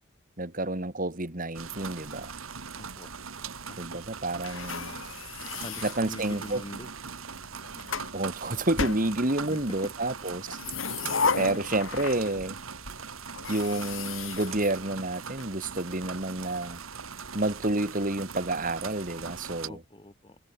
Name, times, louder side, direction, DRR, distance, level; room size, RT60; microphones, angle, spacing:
voice 1, 0.4-2.3 3.8-5.0 5.8-6.6 8.1-10.6 11.3-12.6 13.5-16.8 17.3-19.8, right 2 dB, 40° right, 2.4 m, -29 dB
sound 1, 1.6-19.7, right 6 dB, 85° right, 2.0 m, -41 dB
voice 2, 2.8-3.1 3.7-3.8 5.6-6.9 9.5-9.9 19.7-20.4, left 1 dB, 25° left, 3.2 m, -43 dB
sound 2, 4.4-6.7 7.4-8.1 8.8-9.7 10.4-12.6 12.8-13.0 13.4-15.4, left 4 dB, 75° left, 2.4 m, -34 dB
head